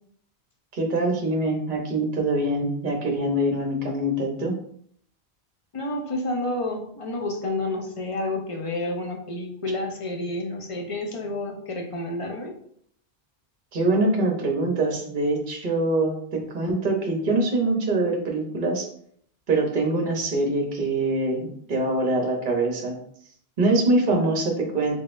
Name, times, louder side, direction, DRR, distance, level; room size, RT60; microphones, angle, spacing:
voice 1, 0.7-4.6 13.7-18.9 19.5-23.0 23.6-25.0, right 2 dB, 50° right, 2 dB, 0.9 m, -24 dB
voice 2, 5.7-12.5, left 2 dB, 35° left, 2 dB, 0.6 m, -30 dB
3.9 x 3.6 x 2.5 m, 0.64 s
omnidirectional pair, 1.1 m